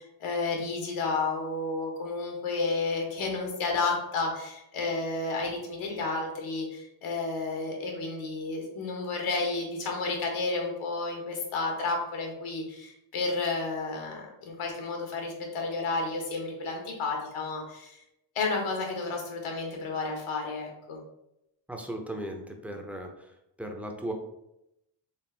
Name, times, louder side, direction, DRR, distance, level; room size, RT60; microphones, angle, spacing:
voice 1, 0.0-18.0 18.3-21.0, left 3 dB, 75° left, 1 dB, 1.5 m, -31 dB
voice 2, 21.7-23.3 23.6-24.1, right 1 dB, 5° right, 2 dB, 0.7 m, -37 dB
4.4 x 3.4 x 3.4 m, 0.85 s
cardioid pair, 80°, 49 cm